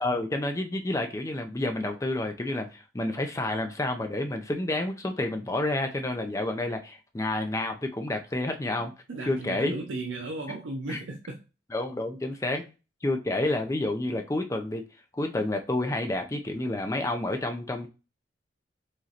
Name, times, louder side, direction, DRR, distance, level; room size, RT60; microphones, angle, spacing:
voice 1, 0.0-8.9 9.2-9.8 10.9-11.0 11.7-12.6 13.0-14.8 15.1-17.9, left 2 dB, 15° left, 0.5 m, -29 dB
voice 2, 8.8-11.4, right 2 dB, 90° right, 0.5 m, -36 dB
4.9 x 3.0 x 2.8 m
head